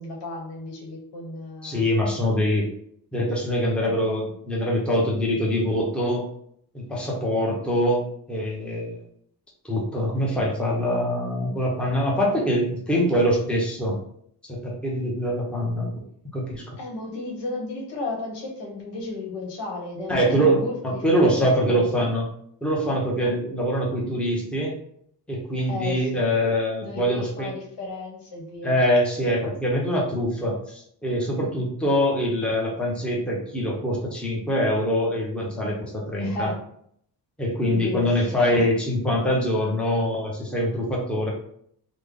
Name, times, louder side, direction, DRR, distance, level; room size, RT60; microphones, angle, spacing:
voice 1, 0.0-1.9 16.8-21.9 25.7-26.2 26.8-28.8 36.2-36.5 37.7-38.1 38.5-38.6, left 3 dB, 85° left, -1 dB, 1.1 m, -34 dB
voice 2, 1.6-2.7 3.1-6.3 6.7-8.0 8.3-9.0 9.6-14.0 14.5-15.9 16.3-16.6 20.1-22.2 22.6-24.7 25.3-27.5 28.6-36.5 37.4-41.3, equal, 5° left, -3 dB, 0.7 m, -24 dB
3.4 x 2.1 x 3.5 m, 0.66 s
wide cardioid pair, 155°, 41 cm